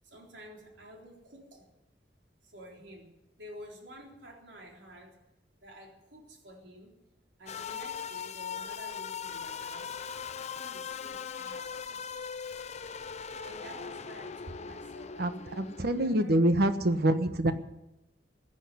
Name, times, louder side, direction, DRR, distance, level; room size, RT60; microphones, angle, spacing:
voice 1, 0.0-1.7 2.4-5.2 5.6-7.0 7.4-10.0 10.4-12.3 13.4-16.4, equal, 80° right, 0 dB, 3.9 m, -50 dB
sound 1, 7.5-16.3, left 6 dB, 40° left, 0.6 m, -40 dB
voice 2, 15.2-17.5, right 1 dB, 60° right, 9 dB, 1.2 m, -26 dB
15.5 x 9.1 x 9.9 m, 0.89 s
head